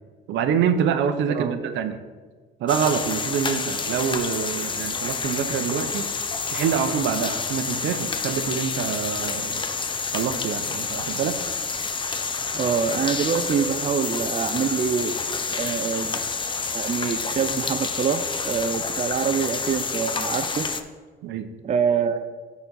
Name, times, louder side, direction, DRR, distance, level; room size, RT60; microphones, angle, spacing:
voice 1, 0.3-2.0 2.6-6.1 6.5-9.6 10.1-11.4 21.2-21.5, right 7 dB, 70° right, 9 dB, 0.7 m, -26 dB
voice 2, 1.3-1.8 12.5-15.2 15.5-16.2 16.7-20.7 21.6-22.2, right 6 dB, 35° right, 9 dB, 0.5 m, -25 dB
sound 1, 2.7-20.8, left 4 dB, 25° left, 0.6 m, -28 dB
12.0 x 4.1 x 4.0 m, 1.4 s
supercardioid pair, 90°, 20 cm